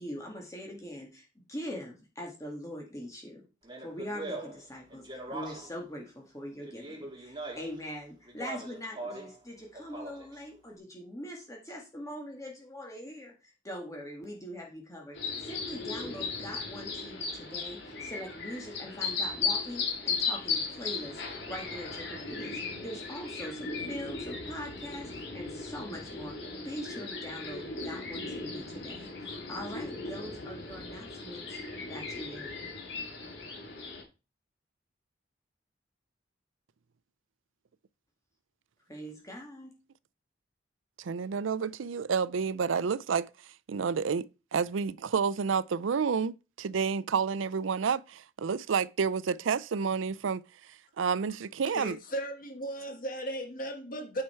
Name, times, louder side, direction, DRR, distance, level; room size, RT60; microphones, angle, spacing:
voice 1, 0.0-3.4 3.8-26.4 26.6-31.5 31.9-32.6 38.9-39.8, equal, 15° left, 1.9 m, -42 dB
Speech, 3.6-5.8 6.6-7.8 8.3-9.4 9.7-10.4, right 2 dB, 25° right, 2.7 m, -41 dB
sound 1, 15.1-34.0, left 4 dB, 60° left, 2.5 m, -37 dB
voice 2, 41.0-52.0, right 6 dB, 90° right, 0.5 m, -30 dB
voice 3, 51.7-54.2, right 1 dB, 45° left, 1.5 m, -36 dB
9.6 x 5.7 x 4.5 m
head